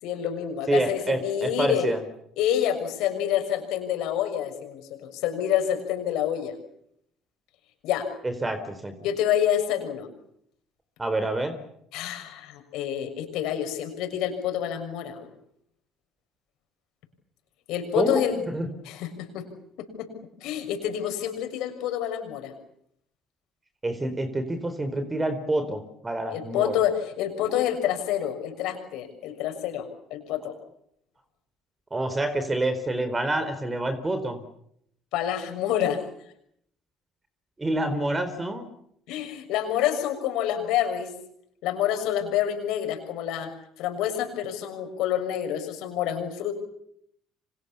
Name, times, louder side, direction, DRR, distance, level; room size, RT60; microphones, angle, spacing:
voice 1, 0.0-1.8 2.4-6.5 7.8-8.1 9.0-10.1 11.9-15.3 17.7-18.3 18.8-19.4 20.0-20.1 20.4-22.5 26.3-30.5 35.1-36.0 39.1-41.1 41.6-43.5 43.8-46.5, left 10 dB, 75° left, 7 dB, 6.4 m, -27 dB
voice 2, 0.7-2.0 8.2-8.9 11.0-11.6 18.0-18.7 23.8-26.8 31.9-34.4 37.6-38.7, right 1 dB, 20° right, 9 dB, 4.2 m, -27 dB
29.5 x 26.0 x 7.1 m, 0.74 s
hypercardioid pair, 65°, 0 cm